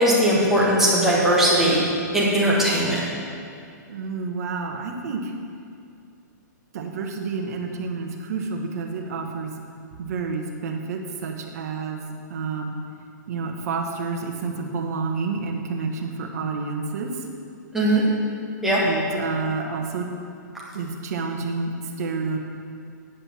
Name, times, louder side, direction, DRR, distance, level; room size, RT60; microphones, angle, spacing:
voice 1, 0.0-1.8 2.1-3.0 17.7-18.0 18.6-18.8, right 1 dB, 5° right, -7 dB, 1.8 m, -19 dB
voice 2, 3.9-5.3 6.7-9.5 10.0-12.0 12.3-12.7 13.3-17.1 18.8-20.1 20.7-21.7 22.0-22.4, right 4 dB, 55° right, 2 dB, 1.5 m, -29 dB
10.0 x 5.3 x 7.4 m, 2.3 s
hypercardioid pair, 150°, 10 cm